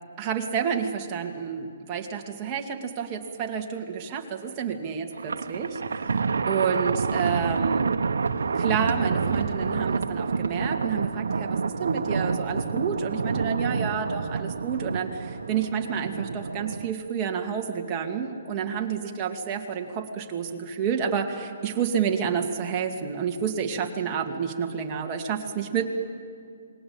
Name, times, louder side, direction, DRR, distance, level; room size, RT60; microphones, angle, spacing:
voice 1, 0.2-7.9 8.5-25.9, right 7 dB, 25° right, 2 dB, 2.4 m, -29 dB
Thunder, 5.1-16.9, right 5 dB, 85° right, 1.1 m, -28 dB
27.5 x 21.5 x 8.9 m, 2.3 s
hypercardioid pair, 160°, 0 cm